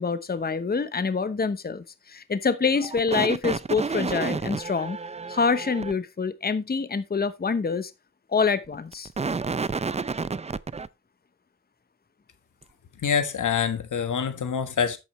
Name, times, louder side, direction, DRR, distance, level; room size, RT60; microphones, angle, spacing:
voice 1, 0.0-5.0 5.3-7.9 8.3-9.1, left 5 dB, 30° left, 0.9 m, -26 dB
sound 1, 2.8-5.9 8.7-10.9, right 4 dB, 20° right, 0.4 m, -30 dB
voice 2, 13.0-15.0, left 7 dB, 90° left, 1.4 m, -25 dB
11.0 x 8.5 x 3.1 m
wide cardioid pair, 95°, 30 cm